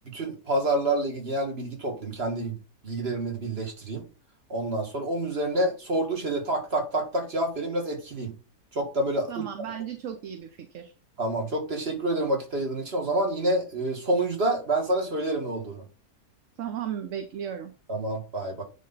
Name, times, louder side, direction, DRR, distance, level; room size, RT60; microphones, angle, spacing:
voice 1, 0.1-2.6 2.8-4.0 4.5-8.3 8.7-9.4 11.2-15.8 17.9-18.6, right 1 dB, 40° right, 2.2 m, -28 dB
voice 2, 9.3-10.9 16.6-17.7, right 9 dB, 60° right, 1.1 m, -35 dB
9.8 x 3.9 x 4.0 m
omnidirectional pair, 1.6 m